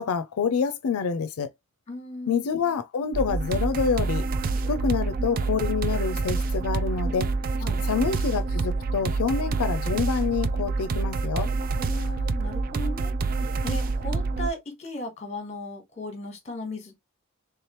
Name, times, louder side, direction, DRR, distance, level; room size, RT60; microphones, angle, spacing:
voice 1, 0.0-1.5 2.3-4.2 4.7-7.3 7.8-11.5, left 6 dB, 90° left, 0.4 m, -27 dB
voice 2, 1.9-2.5 7.6-7.8 11.8-13.1 13.6-17.0, left 1 dB, 30° left, 1.3 m, -36 dB
sound 1, 3.1-14.5, right 3 dB, 40° right, 0.3 m, -27 dB
3.4 x 3.1 x 3.0 m
head